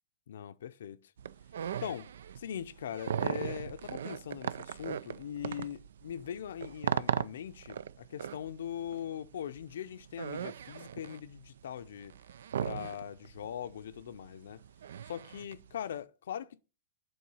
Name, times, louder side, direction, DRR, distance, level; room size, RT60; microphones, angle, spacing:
voice 1, 0.3-1.1 1.8-2.1 2.4-12.2 12.6-14.6 15.0-16.6, left 9 dB, 85° left, 0.5 m, -41 dB
sound 1, 1.2-15.9, right 9 dB, 90° right, 0.3 m, -38 dB
8.5 x 3.7 x 5.4 m
supercardioid pair, 155°, 0 cm